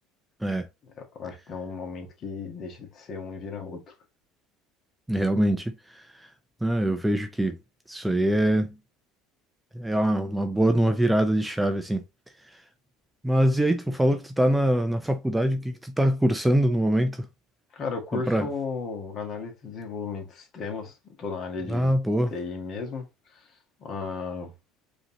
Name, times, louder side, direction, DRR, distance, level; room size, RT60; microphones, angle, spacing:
voice 1, 1.0-3.9 17.7-21.9 22.3-23.5 23.8-24.5, left 4 dB, 45° left, 1.6 m, -35 dB
voice 2, 5.1-6.3 6.6-7.6 7.9-8.7 9.7-12.0 13.2-17.3 18.1-18.5 21.7-22.3, right 1 dB, 5° right, 0.5 m, -24 dB
4.9 x 2.8 x 2.9 m
supercardioid pair, 105°, 0 cm